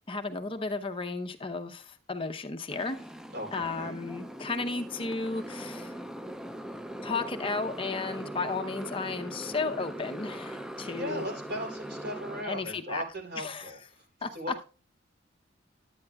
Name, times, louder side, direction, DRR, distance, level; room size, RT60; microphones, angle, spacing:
voice 1, 0.1-3.0 3.5-5.9 7.0-11.3 12.4-13.0 13.4-13.6 14.2-14.3, left 3 dB, 30° left, 6 dB, 0.7 m, -34 dB
Motorcycle, 2.7-12.4, right 1 dB, 5° right, 0.3 m, -40 dB
voice 2, 3.3-4.0 10.9-14.0 14.3-14.6, equal, 55° right, 0 dB, 3.2 m, -38 dB
11.0 x 8.7 x 2.3 m, 0.35 s
head